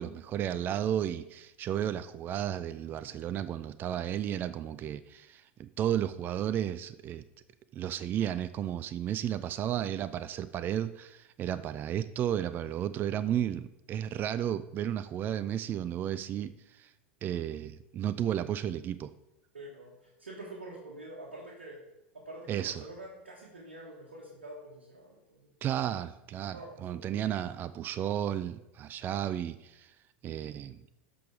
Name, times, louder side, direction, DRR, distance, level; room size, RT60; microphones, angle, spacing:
voice 1, 0.0-7.2 7.7-16.9 17.2-19.1 22.5-22.8 25.6-29.9 30.2-30.8, right 10 dB, 35° right, 14 dB, 0.4 m, -33 dB
voice 2, 19.5-21.8 22.1-25.5 26.5-27.0, right 1 dB, 85° right, -3 dB, 1.6 m, -46 dB
13.5 x 5.2 x 3.5 m, 0.91 s
hypercardioid pair, 90°, 6 cm